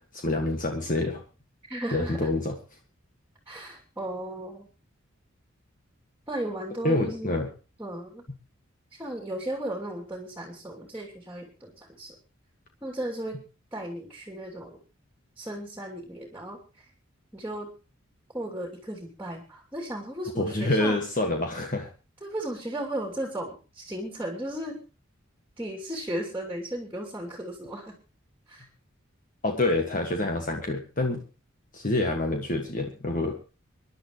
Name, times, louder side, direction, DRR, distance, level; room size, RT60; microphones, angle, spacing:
voice 1, 0.1-1.2 1.9-2.6 6.8-7.5 20.4-21.9 29.4-31.2 31.7-33.4, left 2 dB, 40° left, 3 dB, 1.8 m, -27 dB
voice 2, 1.7-2.3 3.5-4.7 6.3-7.4 7.8-8.2 8.9-12.2 12.8-13.4 13.7-14.8 15.4-16.9 17.3-17.7 18.3-21.0 22.2-24.8 25.6-28.0 28.5-28.6, right 1 dB, 10° right, -1 dB, 2.9 m, -35 dB
26.0 x 11.0 x 3.1 m, 0.32 s
head